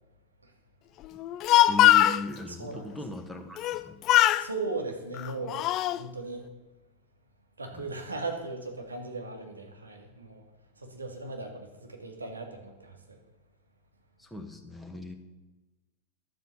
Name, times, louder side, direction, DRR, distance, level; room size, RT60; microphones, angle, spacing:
Speech, 1.2-2.2 3.6-3.8 4.1-4.5 5.2-6.0, left 14 dB, 35° left, 0.4 m, -21 dB
voice 1, 1.7-4.0 7.7-7.9 14.2-15.2, left 1 dB, 5° left, 3 dB, 1.7 m, -38 dB
voice 2, 2.5-2.9 4.4-5.7 6.0-6.4 7.6-10.4 10.8-13.2, right 3 dB, 75° right, 2 dB, 2.1 m, -37 dB
12.0 x 7.5 x 7.1 m, 1.1 s
figure-of-eight pair, 90°, 0 cm